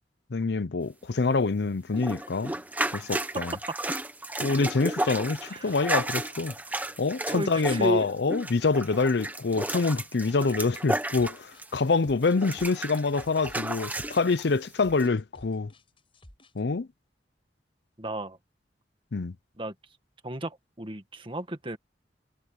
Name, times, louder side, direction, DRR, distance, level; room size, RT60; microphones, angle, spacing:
voice 1, 0.3-2.6 2.9-3.5 4.4-6.5 7.0-15.7 16.6-16.9 19.1-19.3, left 4 dB, 70° left, 0.6 m, -26 dB
sound 1, 1.9-11.9 12.2-14.4 15.0-15.1, right 1 dB, 10° right, 1.4 m, -33 dB
voice 2, 3.3-3.8 5.5-5.8 7.3-8.0 18.0-18.4 19.6-19.7 20.2-21.8, right 1 dB, 30° right, 1.9 m, -32 dB
sound 2, 11.3-16.6, left 1 dB, 30° left, 6.8 m, -53 dB
head